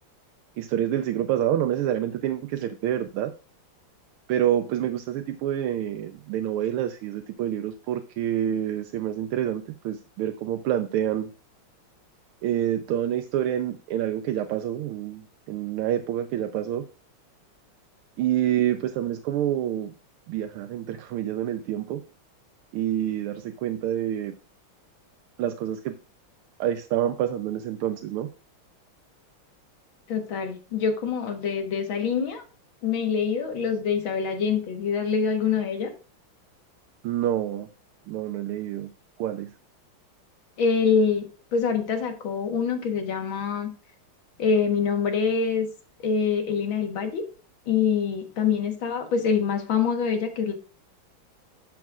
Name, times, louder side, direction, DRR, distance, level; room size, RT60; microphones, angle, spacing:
voice 1, 0.6-3.3 4.3-11.3 12.4-16.8 18.2-19.9 20.3-22.0 22.7-24.3 25.4-25.9 26.6-28.3 37.0-37.7 38.1-38.9 39.2-39.5, right 11 dB, 90° right, 7 dB, 1.5 m, -27 dB
voice 2, 30.1-32.4 32.8-35.9 40.6-41.2 41.5-43.7 44.4-45.7 46.0-47.2 47.7-50.5, left 6 dB, 70° left, 5 dB, 2.1 m, -25 dB
12.0 x 7.3 x 2.4 m, 0.36 s
omnidirectional pair, 2.3 m